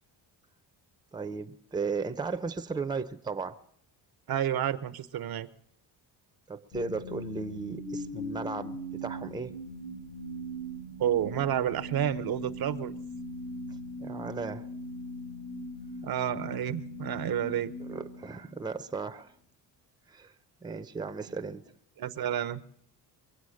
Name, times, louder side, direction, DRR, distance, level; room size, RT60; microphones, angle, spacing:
voice 1, 1.1-3.6 6.5-9.5 14.0-14.7 17.8-19.3 20.1-20.3 20.6-21.6, right 4 dB, 10° right, 0.6 m, -35 dB
voice 2, 4.3-5.5 11.0-12.9 16.0-17.7 22.0-22.6, right 10 dB, 55° right, 0.7 m, -30 dB
sound 1, 6.7-18.9, equal, 65° left, 4.0 m, -40 dB
23.5 x 8.0 x 6.4 m
cardioid pair, 100°, 44 cm